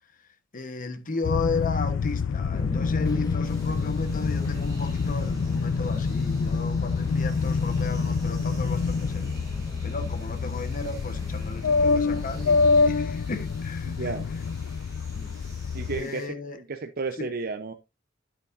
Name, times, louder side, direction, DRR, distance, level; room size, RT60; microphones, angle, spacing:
voice 1, 0.5-9.4 9.8-14.1 15.1-15.3 16.0-16.6 17.2-17.3, left 3 dB, 45° left, 1.1 m, -34 dB
sound 1, 1.2-16.0, left 4 dB, 70° left, 0.4 m, -26 dB
Fixed-wing aircraft airplane, 2.5-12.8, left 1 dB, 20° left, 1.1 m, -37 dB
sound 2, 3.4-16.3, right 2 dB, 20° right, 5.2 m, -52 dB
voice 2, 13.8-14.3 15.7-17.7, right 3 dB, 50° right, 0.8 m, -33 dB
9.6 x 8.8 x 2.6 m
head